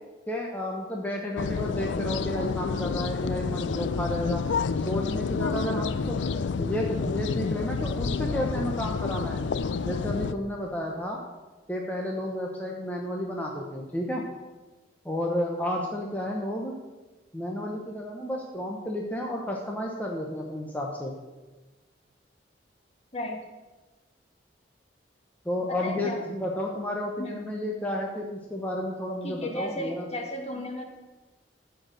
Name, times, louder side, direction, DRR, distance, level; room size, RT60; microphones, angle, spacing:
voice 1, 0.3-4.4 4.8-6.2 6.6-9.4 9.8-11.2 11.7-14.2 15.0-16.7 17.3-21.1 25.4-30.1, left 1 dB, 10° left, -1 dB, 1.0 m, -31 dB
sound 1, 1.4-10.3, left 5 dB, 85° left, 0.4 m, -29 dB
voice 2, 25.8-26.2 27.2-27.5 29.2-30.8, left 1 dB, 35° left, 2 dB, 1.7 m, -34 dB
13.5 x 4.8 x 6.4 m, 1.2 s
head